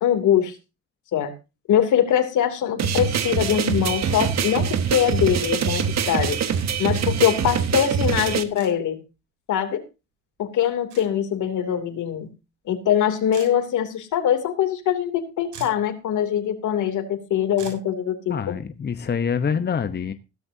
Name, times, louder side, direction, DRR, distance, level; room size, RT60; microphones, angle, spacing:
voice 1, 0.0-0.5 1.1-1.3 1.7-6.4 6.8-9.0 9.5-9.8 10.4-12.3 12.7-18.6, left 9 dB, 80° left, 7 dB, 2.9 m, -22 dB
sound 1, 2.8-8.4, right 7 dB, 60° right, 1.6 m, -24 dB
sound 2, 4.4-4.5 6.5-6.7 8.6-8.7 10.9-11.1 13.3-13.5 15.2-15.3 15.5-15.9 17.6-17.8, right 7 dB, 80° right, 6.8 m, -41 dB
voice 2, 18.3-20.1, left 6 dB, 35° left, 10 dB, 1.0 m, -25 dB
16.5 x 13.0 x 2.8 m, 0.29 s
cardioid pair, 90°, 30 cm